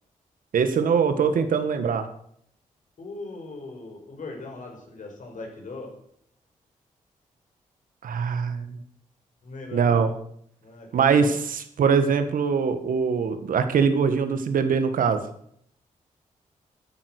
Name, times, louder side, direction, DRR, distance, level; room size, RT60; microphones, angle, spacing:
voice 1, 0.5-2.1 8.0-8.8 9.7-10.1 10.9-15.2, right 6 dB, 75° right, 9 dB, 1.6 m, -22 dB
voice 2, 3.0-5.9 9.4-10.1 10.6-11.4, left 3 dB, 65° left, 1 dB, 5.5 m, -39 dB
13.0 x 10.5 x 6.5 m, 0.69 s
cardioid pair, 60°, 14 cm